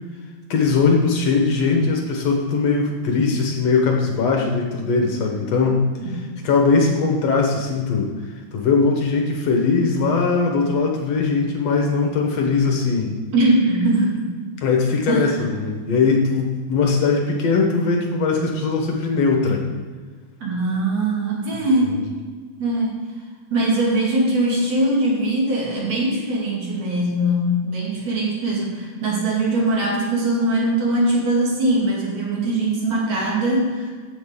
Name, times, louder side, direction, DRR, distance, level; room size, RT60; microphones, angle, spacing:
voice 1, 0.5-5.8 6.4-8.1 8.5-13.1 14.6-19.6 21.8-22.0, left 4 dB, 65° left, 1 dB, 2.0 m, -20 dB
voice 2, 13.3-14.3 15.1-15.3 20.4-21.9 22.6-23.0 23.5-33.9, right 1 dB, 60° right, -4 dB, 3.3 m, -21 dB
15.0 x 6.7 x 3.7 m, 1.5 s
omnidirectional pair, 3.6 m